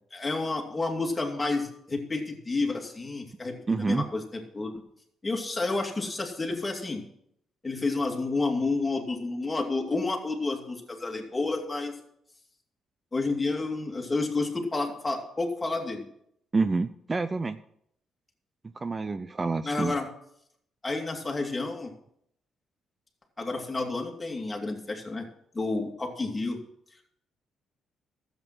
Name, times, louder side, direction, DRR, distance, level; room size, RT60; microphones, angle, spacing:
voice 1, 0.1-4.8 5.2-7.0 7.6-12.0 13.1-16.1 19.6-20.1 20.8-21.9 23.4-25.3 25.5-26.6, left 3 dB, 20° left, 1 dB, 2.6 m, -30 dB
voice 2, 3.7-4.0 16.5-17.6 18.8-19.9, right 3 dB, 25° right, 12 dB, 0.5 m, -28 dB
12.5 x 8.2 x 6.1 m, 0.73 s
cardioid pair, 90°, 0 cm